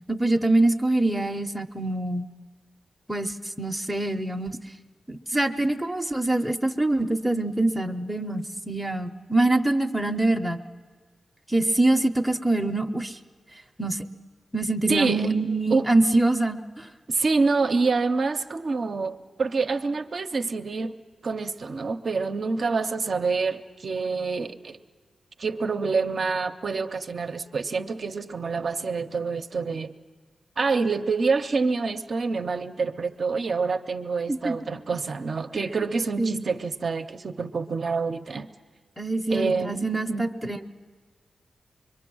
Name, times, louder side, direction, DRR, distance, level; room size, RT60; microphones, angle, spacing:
voice 1, 0.1-2.3 3.1-4.6 5.1-10.6 11.5-13.2 13.8-14.0 14.5-16.9 34.3-34.5 36.2-36.4 39.0-40.7, right 2 dB, ahead, 7 dB, 0.7 m, -24 dB
voice 2, 14.9-15.3 15.7-15.9 17.1-21.0 21.2-24.8 25.4-29.9 30.6-38.5 39.3-40.3, right 4 dB, 50° right, 7 dB, 0.6 m, -27 dB
25.0 x 22.5 x 6.2 m, 1.5 s
wide cardioid pair, 145°, 0 cm